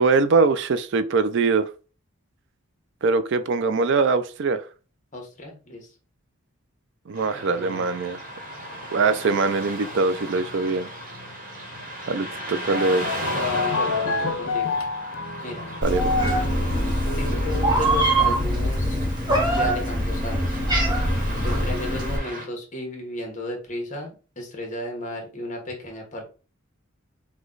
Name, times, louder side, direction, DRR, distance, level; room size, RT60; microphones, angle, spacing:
voice 1, 0.0-1.7 3.0-4.6 7.1-8.2 8.9-10.9 12.1-13.2 15.8-16.3, right 4 dB, 55° right, 0.4 m, -22 dB
voice 2, 5.1-5.9 7.3-7.9 13.3-14.8 15.4-15.6 17.2-19.0 19.5-20.6 21.4-26.2, left 1 dB, 35° left, 1.2 m, -34 dB
Car passing by / Traffic noise roadway noise, 7.1-22.5, right 1 dB, 35° right, 1.2 m, -36 dB
sound 1, 12.5-18.4, left 4 dB, 65° left, 0.7 m, -30 dB
Meow, 15.8-22.2, right 1 dB, 20° right, 1.0 m, -23 dB
5.0 x 2.3 x 3.8 m
head